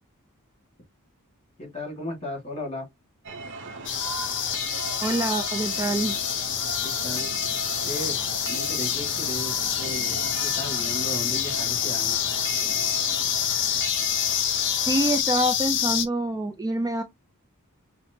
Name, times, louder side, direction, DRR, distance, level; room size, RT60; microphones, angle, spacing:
voice 1, 1.6-2.9 6.8-7.3 7.8-8.2 8.5-12.2, left 1 dB, 30° left, 1.8 m, -35 dB
sound 1, 3.2-15.2, right 3 dB, 55° right, 0.7 m, -37 dB
sound 2, 3.8-16.0, left 10 dB, 55° left, 0.7 m, -27 dB
voice 2, 5.0-6.2 14.8-17.0, right 1 dB, 15° right, 0.3 m, -26 dB
5.8 x 2.0 x 2.7 m
head